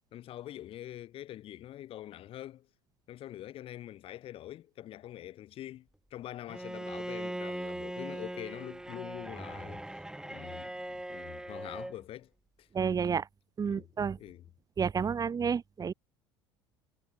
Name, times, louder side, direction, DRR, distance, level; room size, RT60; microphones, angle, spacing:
voice 1, 0.1-2.7 3.1-12.3 12.6-12.7 13.7-13.8 14.2-14.4, left 13 dB, 50° left, 2.2 m, -45 dB
Bowed string instrument, 6.5-12.0, right 1 dB, 5° right, 3.9 m, -40 dB
voice 2, 12.7-13.3 13.6-14.2 14.8-15.9, right 6 dB, 30° right, 2.7 m, -30 dB
hypercardioid pair, 70°, 12 cm